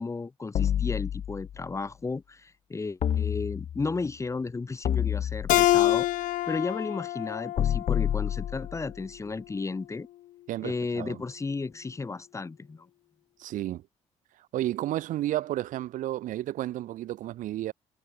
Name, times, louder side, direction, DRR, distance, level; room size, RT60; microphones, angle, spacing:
voice 1, 0.0-6.1 6.5-10.1 10.6-12.9, left 4 dB, 20° left, 1.3 m, -34 dB
sound 1, 0.5-1.6 3.0-4.0 4.8-5.9 7.6-9.0, left 9 dB, 55° left, 0.9 m, -28 dB
Keyboard (musical), 5.5-8.7, left 15 dB, 85° left, 0.6 m, -26 dB
voice 2, 10.5-11.2 13.4-13.8 14.5-17.7, right 14 dB, 85° right, 2.9 m, -32 dB
cardioid pair, 110°, 13 cm